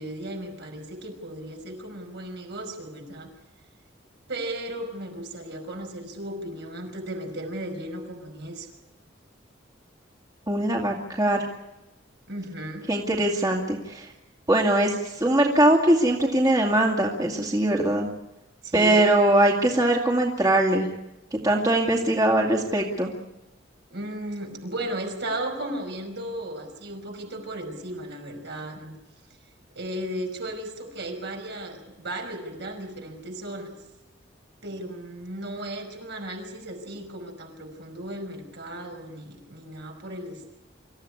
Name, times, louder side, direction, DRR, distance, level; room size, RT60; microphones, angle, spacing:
voice 1, 0.0-3.3 4.3-8.7 12.3-12.9 18.6-19.0 23.9-28.9 29.7-33.7 34.6-40.5, right 1 dB, 65° right, 4 dB, 5.3 m, -35 dB
voice 2, 10.5-11.5 12.9-14.1 14.5-18.1 18.7-20.9 21.4-23.1, right 1 dB, 20° right, 0 dB, 2.3 m, -21 dB
26.0 x 15.0 x 9.8 m, 0.97 s
head